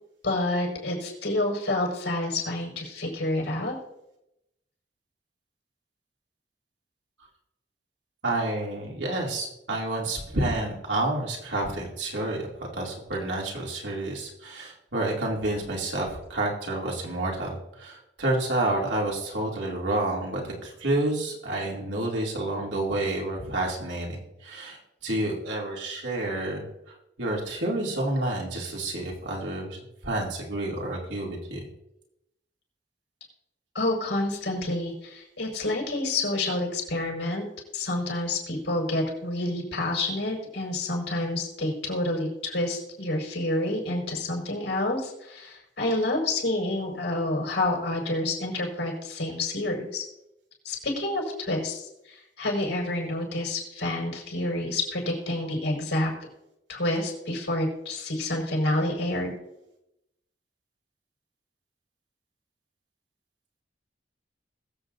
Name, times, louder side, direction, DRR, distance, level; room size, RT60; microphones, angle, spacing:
voice 1, 0.2-3.7 33.7-37.4 37.7-50.0 50.6-56.1 56.7-59.3, left 2 dB, 85° left, -1 dB, 5.0 m, -28 dB
voice 2, 8.2-12.5 12.7-31.6, right 2 dB, 85° right, -2 dB, 2.7 m, -29 dB
21.0 x 7.9 x 2.7 m, 0.86 s
head